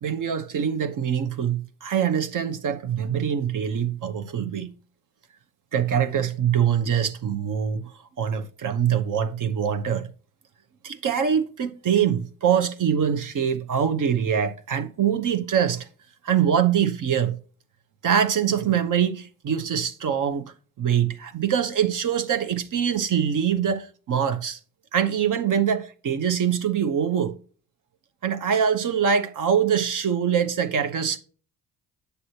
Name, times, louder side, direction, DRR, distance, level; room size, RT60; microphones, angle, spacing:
voice 1, 0.0-4.7 5.7-7.9 8.2-10.1 10.8-15.9 16.2-17.4 18.0-24.6 24.9-27.3 28.2-31.2, right 8 dB, 55° right, 0.9 m, -24 dB
7.7 x 6.8 x 2.8 m
supercardioid pair, 60°, 38 cm